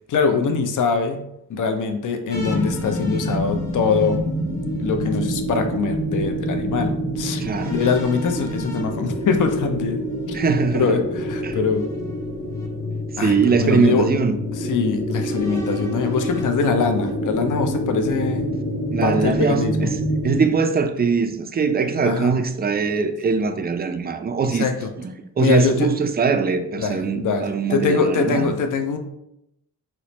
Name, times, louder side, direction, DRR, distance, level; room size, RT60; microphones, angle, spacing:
voice 1, 0.1-1.2 1.5-4.2 4.8-7.4 7.7-10.0 10.3-10.4 10.7-11.8 13.2-14.1 14.5-18.5 19.0-19.9 22.0-22.3 24.4-24.9 25.4-25.9 26.8-27.4 27.7-29.0, left 5 dB, 55° left, 0.5 m, -23 dB
sound 1, 2.3-20.4, equal, 80° left, 1.0 m, -27 dB
sound 2, 2.3-5.0 7.4-10.4 11.7-12.7 13.4-13.5 15.1-17.1, left 2 dB, 10° left, 0.7 m, -42 dB
voice 2, 7.4-7.7 10.3-11.0 11.4-11.6 13.2-14.4 18.9-19.9 20.2-24.7 25.4-28.5, right 5 dB, 25° right, 0.3 m, -21 dB
3.0 x 2.1 x 3.9 m
cardioid pair, 55°, 39 cm